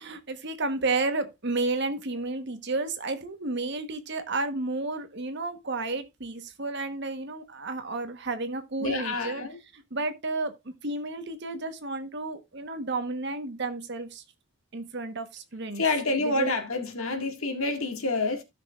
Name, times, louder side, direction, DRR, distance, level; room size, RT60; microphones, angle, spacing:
voice 1, 0.0-9.4 9.7-14.2 14.7-15.8 16.2-16.5, right 3 dB, 55° right, 1.2 m, -32 dB
voice 2, 8.8-9.5 15.8-18.4, left 3 dB, 75° left, 1.9 m, -28 dB
15.5 x 6.2 x 2.4 m
head